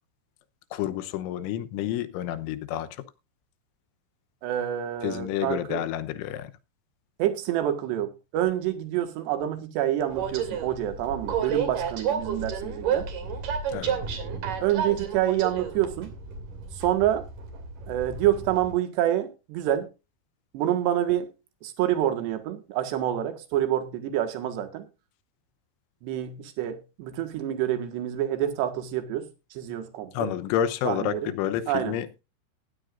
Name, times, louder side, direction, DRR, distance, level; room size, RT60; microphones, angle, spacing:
voice 1, 0.7-3.0 5.0-6.5 13.7-13.9 30.1-32.2, left 11 dB, 80° left, 3.2 m, -29 dB
voice 2, 4.4-5.8 7.2-13.1 14.6-16.1 16.7-17.3 17.9-19.9 20.5-21.3 21.6-24.9 26.0-30.3 30.9-31.3 31.7-32.0, right 12 dB, 65° right, 3.5 m, -27 dB
Train, 10.1-18.7, right 7 dB, 50° right, 3.6 m, -31 dB
16.5 x 11.5 x 2.5 m
omnidirectional pair, 5.7 m